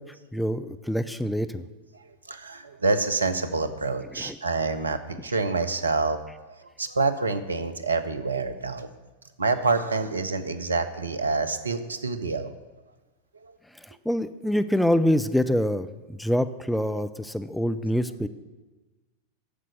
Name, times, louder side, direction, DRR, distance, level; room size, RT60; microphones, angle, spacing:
voice 1, 0.3-1.6 4.2-4.4 13.8-18.3, equal, ahead, 11 dB, 0.6 m, -25 dB
voice 2, 2.3-6.2 6.5-8.9 9.4-12.5 13.4-13.5 16.9-17.0, right 3 dB, 75° right, 10 dB, 0.9 m, -27 dB
9.9 x 7.6 x 9.5 m, 1.2 s
figure-of-eight pair, 90°, 0 cm